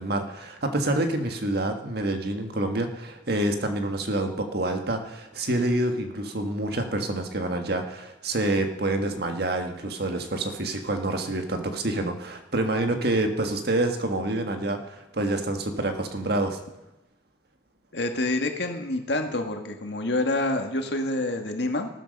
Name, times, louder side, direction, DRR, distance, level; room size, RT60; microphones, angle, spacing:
voice 1, 0.0-16.6, right 2 dB, 55° right, 5 dB, 1.6 m, -27 dB
voice 2, 17.9-21.9, left 2 dB, 65° left, 5 dB, 1.8 m, -27 dB
14.0 x 13.0 x 5.4 m, 0.96 s
head